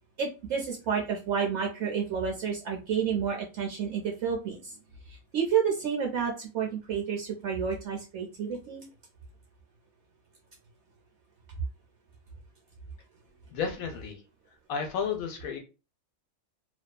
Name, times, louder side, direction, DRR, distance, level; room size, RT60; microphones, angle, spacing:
voice 1, 0.2-4.8 5.3-8.9, right 7 dB, 65° right, 1 dB, 0.7 m, -30 dB
voice 2, 13.5-14.2 14.7-15.6, left 6 dB, 75° left, 4 dB, 1.0 m, -32 dB
2.6 x 2.2 x 2.2 m, 0.31 s
omnidirectional pair, 1.6 m